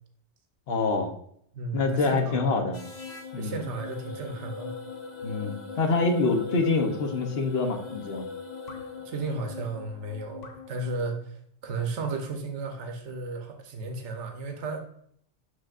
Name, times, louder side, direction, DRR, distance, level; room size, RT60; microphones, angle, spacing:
voice 1, 0.7-1.1 1.7-2.8 3.3-3.6 5.2-8.3, left 3 dB, 60° left, 5 dB, 1.1 m, -26 dB
voice 2, 1.5-2.7 3.4-4.7 9.0-14.8, right 3 dB, 75° right, 4 dB, 1.2 m, -34 dB
sound 1, 2.7-11.1, left 5 dB, 40° left, 0.8 m, -40 dB
6.4 x 6.2 x 2.4 m, 0.67 s
omnidirectional pair, 1.2 m